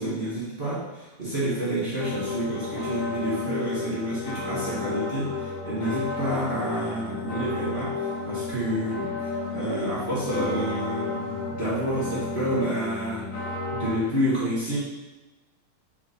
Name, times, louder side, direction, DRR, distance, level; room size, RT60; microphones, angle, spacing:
voice 1, 0.0-8.0 8.3-13.3 13.7-14.8, right 1 dB, 60° right, -10 dB, 0.6 m, -29 dB
sound 1, 2.0-14.0, left 3 dB, 45° left, 1.7 m, -32 dB
8.3 x 3.8 x 4.2 m, 1.1 s
omnidirectional pair, 3.9 m